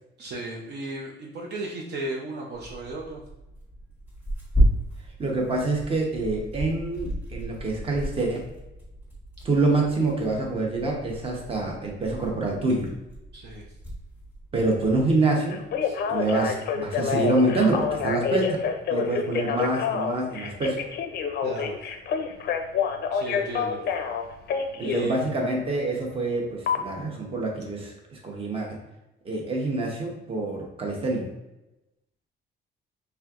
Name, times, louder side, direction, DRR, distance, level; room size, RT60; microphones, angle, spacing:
voice 1, 0.2-3.2 13.3-13.7 15.8-16.0 21.4-21.8 23.1-23.8 24.8-25.3, right 2 dB, 55° right, -1 dB, 0.7 m, -35 dB
Tearing, 2.5-15.2, right 1 dB, 10° right, 1.4 m, -32 dB
voice 2, 5.2-8.4 9.4-12.9 14.5-15.6 16.1-18.5 18.9-20.8 24.8-28.7 29.2-31.3, right 2 dB, 25° right, 0 dB, 0.9 m, -26 dB
Telephone, 15.5-25.1 26.7-26.8, left 6 dB, 50° left, 0.5 m, -27 dB
4.3 x 3.4 x 2.4 m, 0.97 s
cardioid pair, 140°, 21 cm